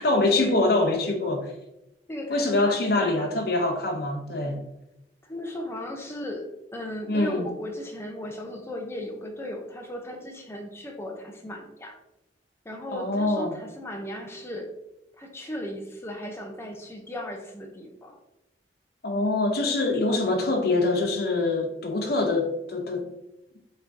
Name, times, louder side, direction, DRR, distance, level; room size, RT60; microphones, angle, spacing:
voice 1, 0.0-1.5 2.3-4.6 7.1-7.5 12.9-13.5 19.0-23.1, left 2 dB, 60° left, 0.8 m, -24 dB
voice 2, 2.1-3.4 5.2-12.0 12.6-14.7 15.2-18.2, left 1 dB, 15° left, 0.7 m, -36 dB
5.5 x 3.6 x 2.7 m
head